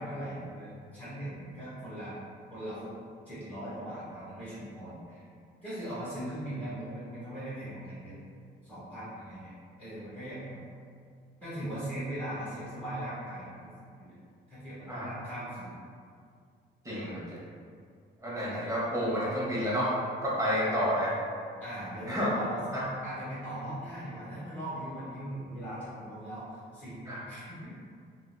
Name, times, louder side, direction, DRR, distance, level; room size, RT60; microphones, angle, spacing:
voice 1, 0.0-2.1 2.5-2.9 3.2-5.2 5.6-8.1 8.6-9.5 9.8-10.6 11.4-14.1 14.5-15.7 16.9-17.2 21.6-27.7, right 1 dB, 10° left, -15 dB, 1.4 m, -39 dB
voice 2, 16.8-17.4 18.2-19.9 20.2-21.1 22.0-22.3 22.7-22.8 27.1-27.2, equal, 15° right, -7 dB, 0.9 m, -30 dB
2.7 x 2.3 x 2.2 m, 2.2 s
cardioid pair, 90°, 20 cm